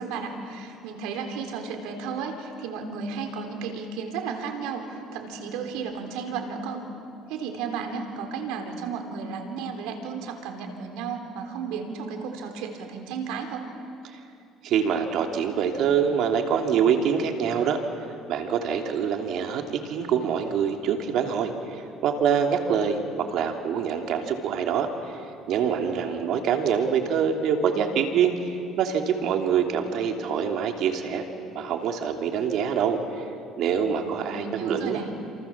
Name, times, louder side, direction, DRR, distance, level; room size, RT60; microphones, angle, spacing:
voice 1, 0.0-6.8 7.3-13.7 34.2-35.1, right 5 dB, 85° right, 4 dB, 3.8 m, -33 dB
voice 2, 14.6-17.8 18.3-24.9 25.5-31.2 31.5-33.3 33.6-35.0, right 7 dB, 65° right, 4 dB, 3.0 m, -25 dB
29.0 x 27.5 x 7.4 m, 2.6 s
cardioid pair, 110°, 0 cm